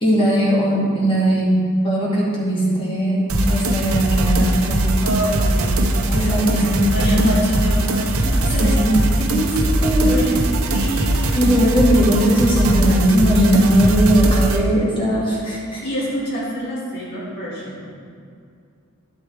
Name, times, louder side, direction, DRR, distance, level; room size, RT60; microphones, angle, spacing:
voice 1, 0.0-1.6 1.8-4.9 6.1-7.3 8.2-9.5 9.8-10.2 11.3-15.8, equal, 25° left, -6 dB, 2.1 m, -19 dB
sound 1, 3.3-14.6, right 1 dB, 85° right, 0.8 m, -20 dB
voice 2, 5.0-6.0 6.9-8.9 10.0-10.4 10.7-11.4 15.8-17.9, equal, 50° left, -7 dB, 2.5 m, -26 dB
11.0 x 7.9 x 3.5 m, 2.3 s
head